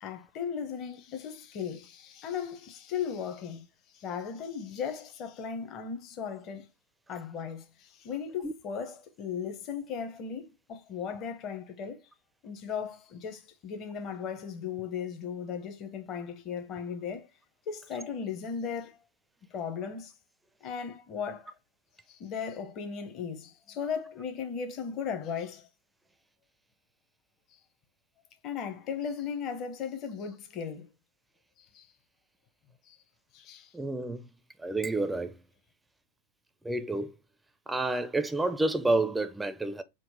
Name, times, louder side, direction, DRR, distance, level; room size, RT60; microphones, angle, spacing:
voice 1, 0.0-3.6 3.9-6.7 7.1-12.0 12.4-17.3 17.7-19.0 19.5-20.1 20.6-21.5 22.1-25.7 28.4-30.9 31.7-31.9 32.9-33.0 33.3-33.7, left 7 dB, 35° left, 0.7 m, -37 dB
voice 2, 33.7-34.2 34.6-35.4 36.6-37.1 37.7-39.8, right 2 dB, 5° right, 0.4 m, -29 dB
3.7 x 2.1 x 4.1 m
figure-of-eight pair, 90°, 0 cm